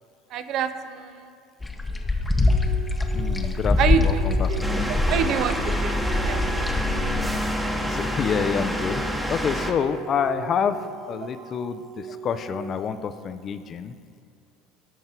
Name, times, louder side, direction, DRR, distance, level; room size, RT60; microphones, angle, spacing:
voice 1, 0.3-1.3 3.8-4.6 4.9-5.9 6.2-6.4, right 8 dB, 55° right, 10 dB, 0.5 m, -26 dB
sound 1, 1.6-7.2, left 3 dB, 15° left, 0.8 m, -24 dB
sound 2, 2.4-12.9, right 6 dB, 35° right, 1.2 m, -40 dB
voice 2, 3.1-5.0 7.9-9.0 9.3-14.0, left 7 dB, 40° left, 11 dB, 0.4 m, -28 dB
sound 3, 4.6-9.7, equal, 5° right, 1.0 m, -27 dB
10.5 x 5.4 x 4.5 m, 2.4 s
hypercardioid pair, 80°, 0 cm